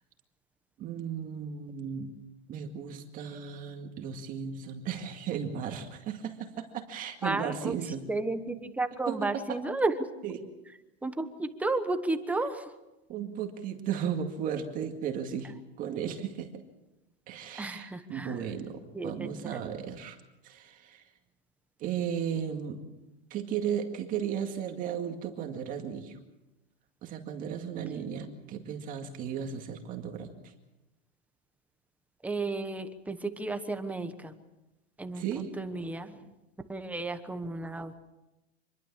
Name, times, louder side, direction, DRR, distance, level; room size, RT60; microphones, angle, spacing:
voice 1, 0.8-2.1 2.5-8.1 9.1-9.6 10.2-10.4 13.1-16.5 17.3-20.2 20.4-21.1 21.8-22.8 23.3-26.2 27.0-30.5 35.1-35.5, right 8 dB, 25° right, 4 dB, 2.1 m, -35 dB
voice 2, 7.2-7.8 8.1-9.9 11.0-12.7 17.6-18.4 18.9-19.6 32.2-34.3 35.0-36.2 36.7-38.0, right 2 dB, 5° right, 8 dB, 1.1 m, -33 dB
26.5 x 22.0 x 7.4 m, 0.98 s
supercardioid pair, 165°, 33 cm